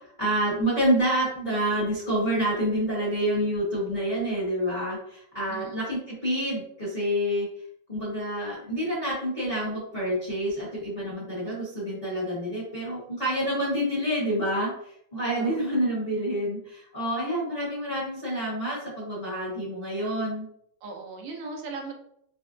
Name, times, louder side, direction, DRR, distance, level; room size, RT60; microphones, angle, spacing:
voice 1, 0.2-7.5 7.9-14.7 15.1-20.5, equal, 25° left, -9 dB, 1.1 m, -28 dB
voice 2, 20.8-22.0, right 3 dB, 75° right, 1 dB, 1.3 m, -38 dB
4.2 x 2.0 x 2.5 m, 0.70 s
omnidirectional pair, 2.3 m